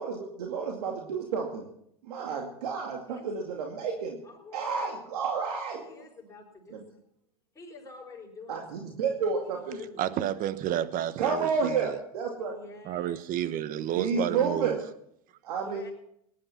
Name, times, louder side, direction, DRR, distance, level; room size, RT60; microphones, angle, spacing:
voice 1, 0.0-1.7 2.0-4.2 4.5-5.8 6.7-6.8 8.5-9.8 11.2-12.5 13.9-14.8 15.4-15.9, right 5 dB, 80° right, 2.3 m, -30 dB
voice 2, 3.1-3.5 4.2-4.7 5.7-6.8 7.5-8.9 9.5-10.3 12.4-13.3 13.7-14.7 15.6-15.9, left 3 dB, 15° left, 5.7 m, -48 dB
voice 3, 10.0-11.9 12.8-14.8, right 11 dB, 45° right, 1.1 m, -31 dB
19.0 x 11.0 x 5.8 m
hypercardioid pair, 100°, 20 cm